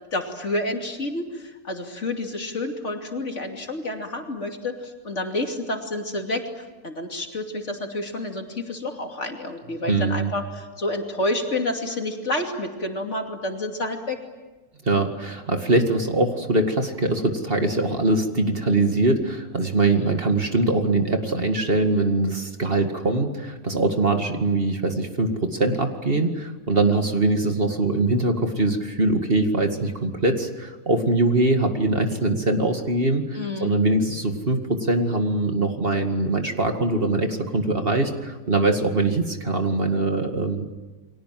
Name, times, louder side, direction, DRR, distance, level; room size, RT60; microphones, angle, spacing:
voice 1, 0.1-14.2 19.9-20.2 33.3-33.7, left 2 dB, 55° left, 3 dB, 3.1 m, -29 dB
voice 2, 9.9-10.3 14.8-40.7, right 2 dB, 40° right, 5 dB, 2.3 m, -22 dB
30.0 x 23.5 x 7.7 m, 1.2 s
omnidirectional pair, 1.5 m